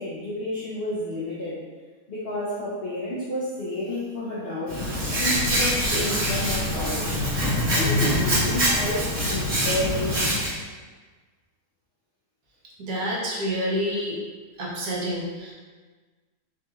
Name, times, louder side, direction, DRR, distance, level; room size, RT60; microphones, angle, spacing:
voice 1, 0.0-1.6 2.1-4.8 5.1-7.2 7.7-10.3, left 1 dB, 75° left, -8 dB, 0.5 m, -30 dB
Hands, 4.7-10.5, equal, 45° right, 1.5 m, -24 dB
voice 2, 12.8-14.2 14.6-15.5, equal, 65° right, -4 dB, 1.1 m, -28 dB
3.4 x 2.8 x 2.3 m, 1.4 s
omnidirectional pair, 1.7 m